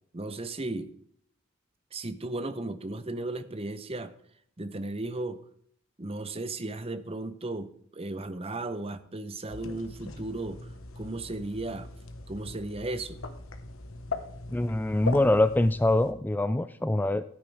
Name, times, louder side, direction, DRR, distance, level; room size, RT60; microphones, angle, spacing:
voice 1, 0.1-0.9 1.9-4.1 4.6-5.4 6.0-10.7 11.0-11.9 12.3-13.2, right 2 dB, 30° right, 12 dB, 0.8 m, -35 dB
sound 1, 9.5-16.1, left 3 dB, 75° left, 1.2 m, -40 dB
voice 2, 14.5-17.2, left 1 dB, 10° left, 13 dB, 0.3 m, -24 dB
13.5 x 9.6 x 3.5 m, 0.64 s
head